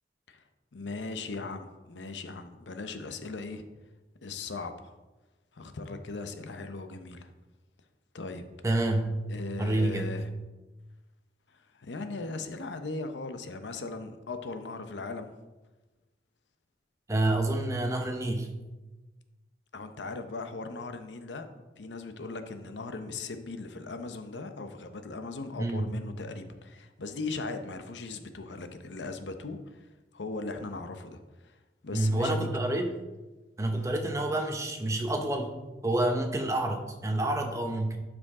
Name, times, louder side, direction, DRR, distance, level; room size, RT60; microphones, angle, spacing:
voice 1, 0.7-3.6 4.2-4.9 5.5-7.3 8.1-8.4 9.3-10.3 11.5-15.3 19.7-21.5 21.8-32.4 33.8-33.9, left 3 dB, 80° left, 8 dB, 0.7 m, -38 dB
voice 2, 8.6-9.1 9.6-10.1 17.1-18.5 25.6-25.8 31.9-32.9 33.6-35.6 35.8-38.0, right 1 dB, 15° right, 4 dB, 0.8 m, -28 dB
12.0 x 5.1 x 3.7 m, 1.1 s
head